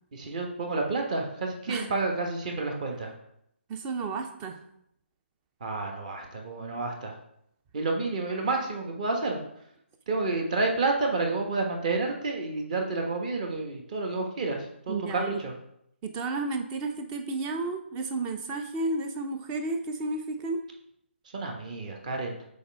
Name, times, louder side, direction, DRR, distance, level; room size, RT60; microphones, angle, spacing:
voice 1, 0.1-3.1 5.6-7.1 7.7-9.4 10.1-15.5 21.3-22.3, right 3 dB, 35° right, 1 dB, 1.3 m, -30 dB
voice 2, 3.7-4.6 14.9-15.4 16.0-20.6, right 3 dB, 15° right, 6 dB, 0.5 m, -32 dB
7.1 x 4.3 x 4.6 m, 0.74 s
figure-of-eight pair, 155°, 7 cm